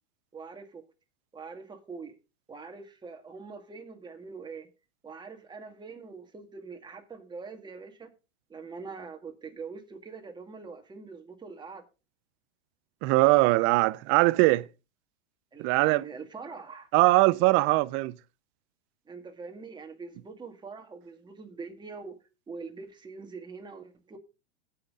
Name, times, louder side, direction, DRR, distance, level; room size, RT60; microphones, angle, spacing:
voice 1, 0.3-0.8 1.3-2.2 2.5-4.7 5.0-8.1 8.5-11.8 15.5-16.9 19.1-22.2 22.5-24.2, right 4 dB, 15° right, 1.9 m, -43 dB
voice 2, 13.0-14.7 15.6-16.0 16.9-18.1, right 21 dB, 40° right, 0.6 m, -21 dB
17.0 x 5.8 x 3.7 m
hypercardioid pair, 120°, 33 cm